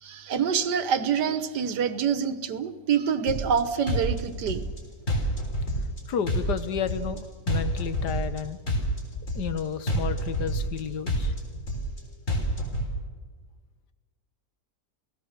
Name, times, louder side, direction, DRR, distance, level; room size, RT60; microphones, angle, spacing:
voice 1, 0.0-4.7, right 7 dB, 85° right, 11 dB, 1.7 m, -26 dB
sound 1, 3.3-3.6 3.9-4.8 5.1-6.0 6.3-7.2 7.5-8.4 8.7-9.6 9.9-10.8 11.1-12.0 12.3-12.9, equal, 50° left, 4.3 m, -28 dB
voice 2, 6.1-8.6 9.3-11.3, left 7 dB, 90° left, 11 dB, 1.7 m, -31 dB
29.5 x 17.0 x 6.6 m, 1.5 s
omnidirectional pair, 1.7 m